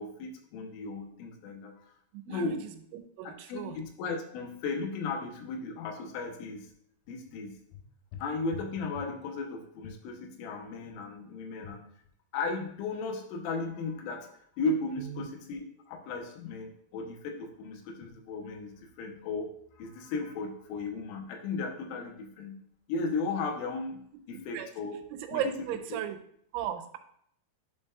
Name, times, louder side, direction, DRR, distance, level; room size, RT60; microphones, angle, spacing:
voice 1, 0.0-1.9 2.3-2.6 3.2-6.7 7.1-7.5 8.1-11.8 12.3-22.6 22.9-24.0 24.3-25.0 25.3-25.5, left 3 dB, 90° left, 4 dB, 3.5 m, -35 dB
voice 2, 3.2-3.8 24.3-24.7 25.3-26.2 26.5-27.0, right 9 dB, 85° right, 8 dB, 3.0 m, -35 dB
10.5 x 5.4 x 2.3 m, 0.65 s
omnidirectional pair, 5.5 m